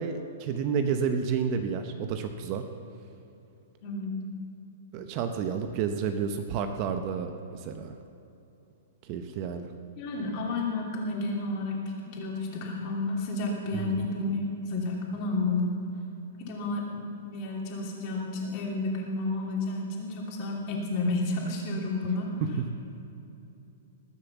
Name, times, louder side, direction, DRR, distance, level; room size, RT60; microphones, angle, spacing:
voice 1, 0.0-2.6 4.9-8.0 9.1-9.7 13.8-14.0, right 6 dB, 35° right, 7 dB, 0.8 m, -30 dB
voice 2, 3.8-4.1 10.0-15.7 16.4-22.3, left 2 dB, 35° left, -1 dB, 2.9 m, -31 dB
20.0 x 7.0 x 7.1 m, 2.9 s
hypercardioid pair, 160°, 0 cm